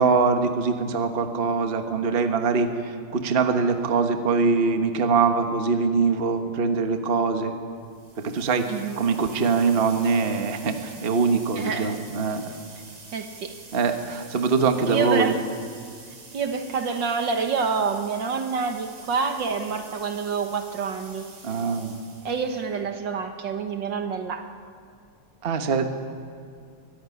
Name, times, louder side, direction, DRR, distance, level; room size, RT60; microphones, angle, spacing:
voice 1, 0.0-7.5 8.2-8.7 9.0-12.5 13.7-15.4 21.4-22.0 25.4-25.9, right 4 dB, 30° right, 6 dB, 1.2 m, -23 dB
sound 1, 7.8-22.8, right 4 dB, 75° right, 3.8 m, -47 dB
voice 2, 8.7-9.0 11.6-12.0 13.1-13.5 14.8-15.4 16.3-21.3 22.3-24.5, right 5 dB, 60° right, 6 dB, 1.8 m, -27 dB
23.0 x 15.0 x 9.8 m, 2.2 s
omnidirectional pair, 2.4 m